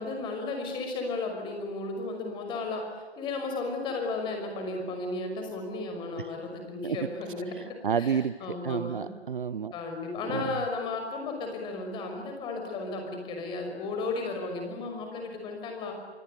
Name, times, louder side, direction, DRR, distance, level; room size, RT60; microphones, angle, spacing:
voice 1, 0.0-7.6 8.0-9.1 9.7-16.0, left 3 dB, 15° left, 3 dB, 5.7 m, -34 dB
voice 2, 7.6-9.7 10.3-10.6, right 7 dB, 50° right, 16 dB, 1.0 m, -30 dB
26.0 x 25.0 x 8.4 m, 1.3 s
figure-of-eight pair, 145°, 33 cm